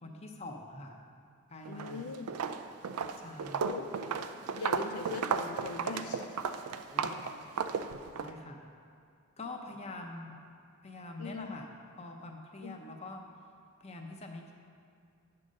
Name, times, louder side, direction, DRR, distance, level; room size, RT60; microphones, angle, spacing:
voice 1, 0.0-1.0 1.5-2.0 3.2-3.8 6.9-7.3 8.1-8.7 9.4-10.4 10.8-11.7 12.0-13.3 13.8-14.5, left 2 dB, 30° left, 2 dB, 0.6 m, -45 dB
Walk footsteps, 1.6-2.0 2.3-8.3, right 6 dB, 90° right, 0.4 m, -34 dB
voice 2, 1.7-2.3 3.6-3.9 4.6-6.3 11.2-11.5 12.6-12.7, left 4 dB, 80° left, 7 dB, 0.4 m, -40 dB
9.8 x 3.9 x 6.3 m, 2.3 s
head